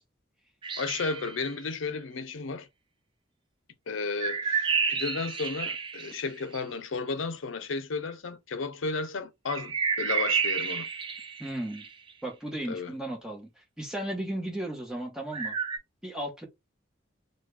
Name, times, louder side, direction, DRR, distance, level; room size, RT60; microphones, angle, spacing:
sound 1, 0.6-1.6 4.2-6.6 9.5-12.1 15.3-15.8, right 6 dB, 25° right, 0.4 m, -30 dB
voice 1, 0.8-2.7 3.9-10.9 12.7-12.9, left 4 dB, 80° left, 0.6 m, -33 dB
voice 2, 11.4-11.8 12.2-15.6 16.0-16.5, right 1 dB, 5° right, 1.0 m, -35 dB
3.2 x 2.2 x 3.2 m
head